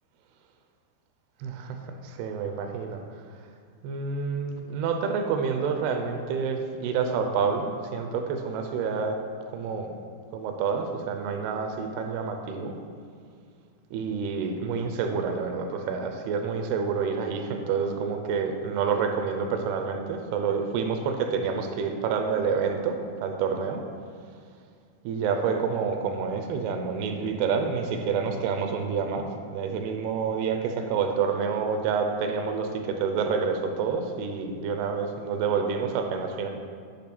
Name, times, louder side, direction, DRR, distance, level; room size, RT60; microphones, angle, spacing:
voice 1, 2.0-3.0 3.8-9.2 9.5-9.9 10.3-12.8 13.9-23.8 25.0-36.5, right 5 dB, 85° right, 5 dB, 2.6 m, -28 dB
8.5 x 3.4 x 5.9 m, 2.2 s
omnidirectional pair, 4.5 m